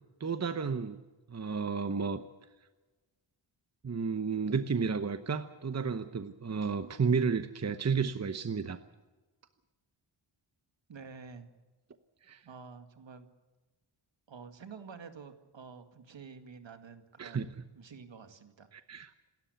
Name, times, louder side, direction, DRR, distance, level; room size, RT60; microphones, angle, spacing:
voice 1, 0.2-1.0 1.3-2.2 3.8-8.8 12.2-12.4 17.2-17.7 18.7-19.3, right 5 dB, 35° right, 10 dB, 1.0 m, -32 dB
voice 2, 10.9-11.5 12.4-13.3 14.3-17.5 17.7-18.7, right 5 dB, 65° right, 8 dB, 2.2 m, -49 dB
27.5 x 13.5 x 8.2 m, 1.2 s
wide cardioid pair, 125°, 48 cm